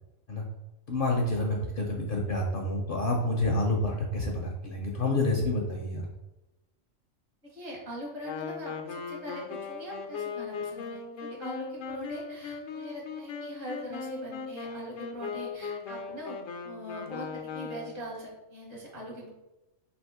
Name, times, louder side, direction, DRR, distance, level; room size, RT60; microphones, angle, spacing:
voice 1, 0.9-6.1, left 2 dB, 55° left, 0 dB, 0.7 m, -28 dB
voice 2, 7.4-16.4 16.6-19.3, equal, 60° right, -3 dB, 1.7 m, -42 dB
Wind instrument woodwind instrument, 8.2-18.1, left 5 dB, 80° left, 0.9 m, -38 dB
3.5 x 2.9 x 4.7 m, 1.0 s
omnidirectional pair, 1.3 m